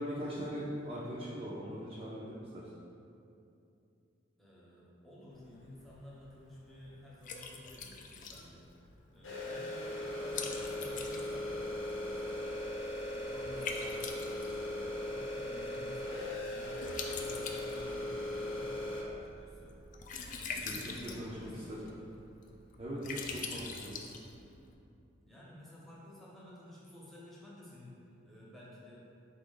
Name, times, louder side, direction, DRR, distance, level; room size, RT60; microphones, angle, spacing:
voice 1, 0.0-2.7 20.6-21.8 22.8-23.9, equal, 30° right, -7 dB, 0.5 m, -40 dB
voice 2, 4.4-8.7 9.1-12.7 13.0-19.8 20.4-22.1 23.2-23.5 25.2-28.0 28.3-29.0, left 1 dB, ahead, -7 dB, 0.9 m, -53 dB
Liquid, 5.3-24.7, left 5 dB, 45° left, 0.4 m, -46 dB
sound 1, 9.2-19.0, left 1 dB, 90° left, 0.8 m, -38 dB
sound 2, 10.3-23.6, equal, 70° right, 1.0 m, -58 dB
4.1 x 3.2 x 3.9 m, 2.6 s
head